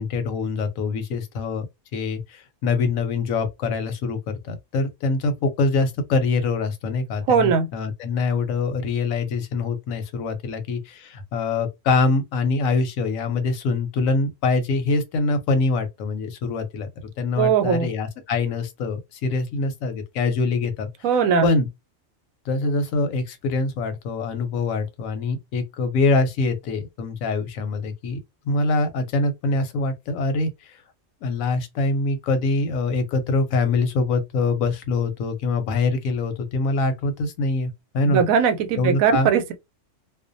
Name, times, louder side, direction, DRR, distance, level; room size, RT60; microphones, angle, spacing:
voice 1, 0.0-1.7 1.9-4.2 4.4-16.9 17.2-20.9 21.4-21.7 22.5-28.2 28.5-30.7 31.2-38.2 38.8-39.3, left 3 dB, 90° left, 1.1 m, -24 dB
voice 2, 7.3-7.7 17.4-17.9 21.0-21.5 38.1-39.5, right 6 dB, 90° right, 1.0 m, -19 dB
2.4 x 2.1 x 2.6 m
omnidirectional pair, 1.4 m